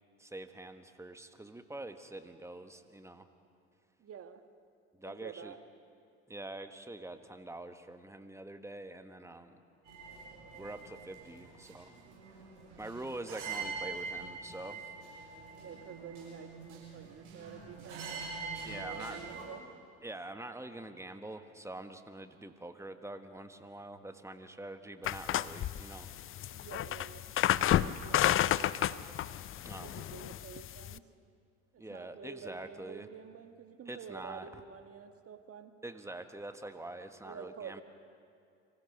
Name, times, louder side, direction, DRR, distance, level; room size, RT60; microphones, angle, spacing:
voice 1, 0.2-3.3 4.9-5.5 6.3-9.6 10.5-11.9 12.8-14.9 18.6-19.2 20.0-26.4 27.8-28.2 29.6-30.0 31.8-33.1 33.9-34.5 35.8-37.8, right 2 dB, 10° right, 8 dB, 1.5 m, -45 dB
voice 2, 4.0-4.4 5.0-5.6 15.6-18.2 18.6-19.6 26.5-29.1 29.6-31.0 31.7-35.7 37.2-37.8, right 7 dB, 40° right, 8 dB, 1.5 m, -49 dB
sound 1, 9.8-19.4, right 4 dB, 65° right, 7.1 m, -44 dB
sound 2, 25.0-31.0, left 12 dB, 35° left, 0.5 m, -31 dB
25.0 x 15.5 x 6.6 m, 2.3 s
hypercardioid pair, 60°, 35 cm